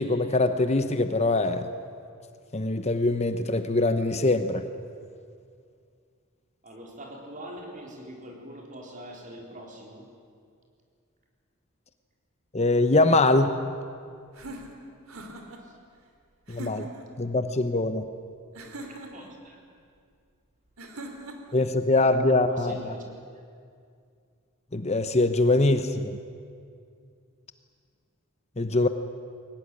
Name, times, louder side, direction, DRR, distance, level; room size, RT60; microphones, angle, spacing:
voice 1, 0.0-1.6 2.5-4.7 12.5-13.5 16.5-16.9 17.2-18.0 21.5-22.7 24.7-26.2 28.6-28.9, left 2 dB, 30° left, 9 dB, 0.9 m, -23 dB
voice 2, 6.6-10.1 15.6-15.8 18.9-19.7 22.5-23.1, right 1 dB, 40° right, 1 dB, 4.2 m, -43 dB
sound 1, 14.3-15.6 16.5-17.1 18.5-19.3 20.8-21.6, right 1 dB, 85° right, 3.0 m, -41 dB
22.5 x 18.0 x 9.9 m, 2.3 s
head